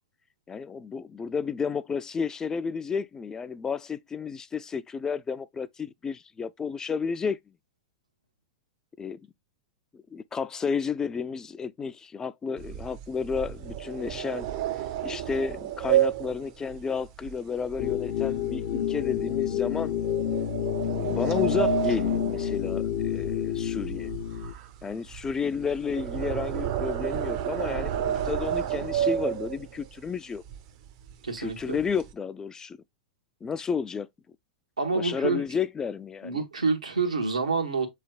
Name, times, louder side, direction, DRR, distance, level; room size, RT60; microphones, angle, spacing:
voice 1, 0.5-7.4 9.0-9.2 9.9-14.5 15.0-19.9 20.7-24.1 24.8-30.4 31.4-32.8 33.4-34.1 34.9-36.4, left 6 dB, 15° left, 0.3 m, -32 dB
sound 1, 12.6-17.9 18.2-18.6 19.1-19.2 20.0-23.3 23.6-29.9 30.5-30.6 30.9-31.1 31.5-32.1, right 11 dB, 50° right, 0.6 m, -30 dB
sound 2, 17.8-24.5, left 10 dB, 55° left, 0.6 m, -29 dB
voice 2, 31.2-31.8 34.8-35.4 36.2-37.9, right 4 dB, 90° right, 1.3 m, -27 dB
6.8 x 3.2 x 2.2 m
hypercardioid pair, 100°, 4 cm